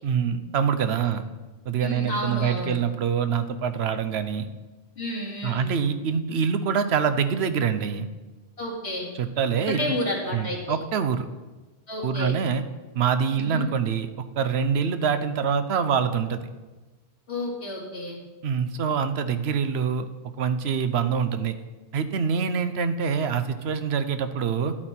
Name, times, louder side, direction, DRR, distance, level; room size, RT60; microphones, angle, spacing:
voice 1, 0.0-1.2 1.7-4.5 5.4-8.1 9.1-10.0 10.3-11.3 12.0-12.6 12.9-16.4 18.4-20.1 20.4-21.6 21.9-24.7, right 7 dB, 80° right, 10 dB, 1.0 m, -25 dB
voice 2, 1.8-2.8 5.0-5.7 8.6-9.1 9.7-10.8 11.9-12.3 13.4-13.6 17.3-18.2, left 1 dB, 80° left, -3 dB, 2.7 m, -30 dB
11.5 x 8.7 x 4.3 m, 1.2 s
omnidirectional pair, 1.1 m